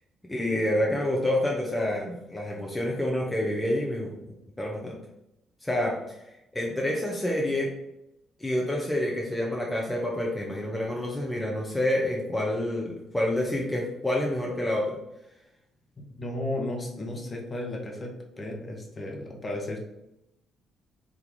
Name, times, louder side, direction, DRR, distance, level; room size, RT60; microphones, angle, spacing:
voice 1, 0.3-5.0 5.6-6.2 6.5-7.7 8.4-15.0, left 1 dB, 10° left, -2 dB, 0.9 m, -28 dB
voice 2, 16.0-18.1 18.4-19.8, left 1 dB, 35° left, 0 dB, 1.3 m, -34 dB
3.8 x 2.9 x 3.9 m, 0.87 s
hypercardioid pair, 45°, 0 cm